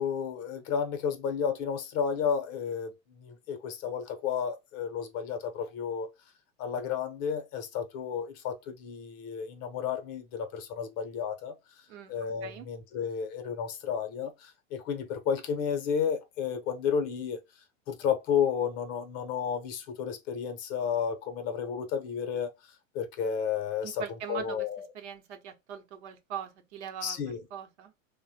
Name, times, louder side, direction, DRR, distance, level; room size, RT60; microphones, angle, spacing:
voice 1, 0.0-6.1 6.6-11.5 12.1-17.4 17.9-24.9 27.0-27.5, left 7 dB, 40° left, 0.7 m, -32 dB
voice 2, 23.8-24.7 24.9-27.2 27.5-27.9, right 8 dB, 60° right, 0.9 m, -41 dB
3.0 x 2.1 x 2.7 m
hypercardioid pair, 100°, 39 cm